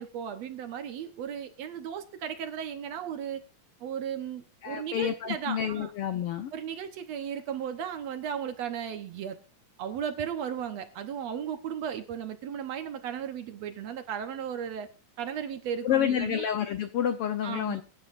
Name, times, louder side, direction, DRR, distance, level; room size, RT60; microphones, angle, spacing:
voice 1, 0.0-3.4 3.8-5.9 6.5-9.4 9.8-14.9 15.2-16.4 17.4-17.8, right 8 dB, 65° right, 8 dB, 1.9 m, -35 dB
voice 2, 4.6-6.5 15.8-17.8, left 9 dB, 80° left, 9 dB, 1.3 m, -29 dB
23.0 x 10.5 x 2.5 m, 0.32 s
omnidirectional pair, 3.7 m